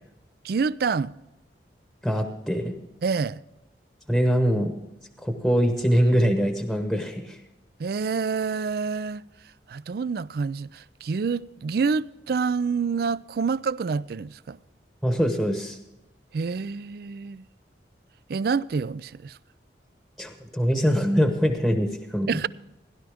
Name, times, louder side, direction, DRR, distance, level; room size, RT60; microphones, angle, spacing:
voice 1, 0.4-1.1 3.0-3.4 7.8-9.3 9.7-14.6 16.3-17.5 18.3-19.4 22.3-22.5, right 5 dB, 55° right, 0.4 m, -27 dB
voice 2, 2.0-2.8 4.1-4.7 5.2-7.4 15.0-15.8 20.2-22.3, equal, ahead, 1.0 m, -23 dB
16.5 x 11.5 x 3.5 m
head